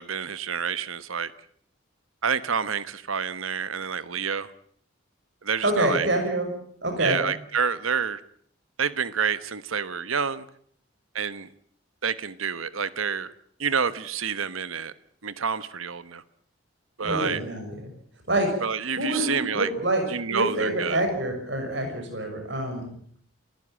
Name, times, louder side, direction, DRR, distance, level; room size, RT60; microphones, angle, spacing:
voice 1, 0.0-1.3 2.2-4.5 5.4-6.1 7.0-8.2 8.8-10.5 11.1-11.5 12.0-13.3 13.6-14.9 15.2-16.2 17.0-17.4 18.6-19.7 20.1-21.0, right 6 dB, 90° right, 15 dB, 1.1 m, -28 dB
voice 2, 5.6-6.5 6.8-7.2 17.0-17.9 18.3-18.5 18.9-20.0 20.3-22.9, right 1 dB, 60° right, 5 dB, 6.1 m, -26 dB
28.5 x 15.0 x 8.9 m, 0.62 s
head